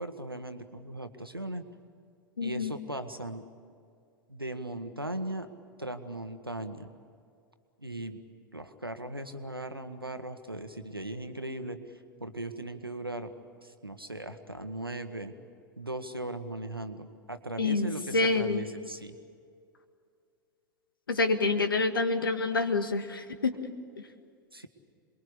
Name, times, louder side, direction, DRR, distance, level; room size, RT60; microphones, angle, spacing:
voice 1, 0.0-1.6 2.4-3.4 4.3-5.5 5.8-6.9 7.8-8.2 8.5-13.3 13.6-15.3 15.8-19.2 24.5-24.7, right 1 dB, 90° right, 8 dB, 1.5 m, -38 dB
voice 2, 2.4-2.7 17.6-18.7 21.1-23.7, left 3 dB, 75° left, 9 dB, 1.7 m, -27 dB
28.0 x 22.0 x 8.3 m, 2.3 s
figure-of-eight pair, 90°, 12 cm